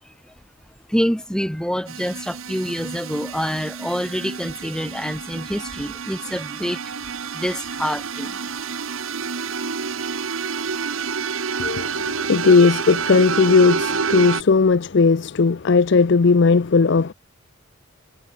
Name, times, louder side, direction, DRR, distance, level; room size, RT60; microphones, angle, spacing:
voice 1, 0.9-6.8 7.3-8.5, equal, 5° left, 1.6 m, -26 dB
sound 1, 1.9-14.4, right 5 dB, 70° right, 1.0 m, -28 dB
voice 2, 11.6-17.1, left 4 dB, 55° left, 0.5 m, -17 dB
head